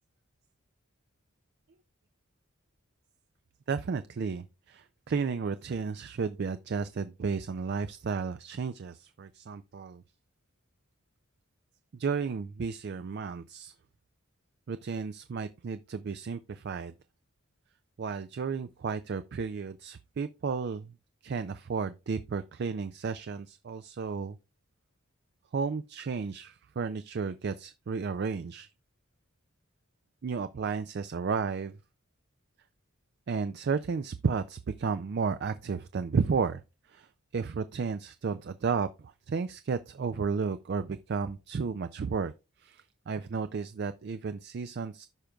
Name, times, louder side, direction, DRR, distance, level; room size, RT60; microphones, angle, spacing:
voice 1, 3.7-10.0 11.9-13.7 14.7-16.9 18.0-20.9 21.2-24.4 25.5-28.7 30.2-31.8 33.3-36.6 36.9-42.3 42.6-45.1, right 5 dB, 50° right, 0.4 m, -33 dB
15.0 x 5.1 x 2.3 m
head